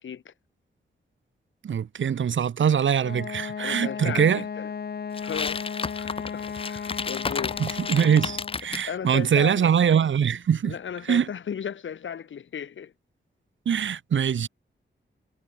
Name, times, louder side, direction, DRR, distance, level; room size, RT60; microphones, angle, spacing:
voice 1, 0.0-0.3 3.6-4.7 5.2-7.6 8.9-9.7 10.6-12.9, left 8 dB, 85° left, 4.0 m, -35 dB
voice 2, 1.6-4.4 7.6-10.7 11.1-11.3 13.7-14.5, right 8 dB, 80° right, 2.4 m, -23 dB
Wind instrument woodwind instrument, 2.9-8.6, left 6 dB, 55° left, 2.1 m, -35 dB
sound 1, 5.1-8.9, left 5 dB, 30° left, 0.5 m, -32 dB
wide cardioid pair, 135°, 19 cm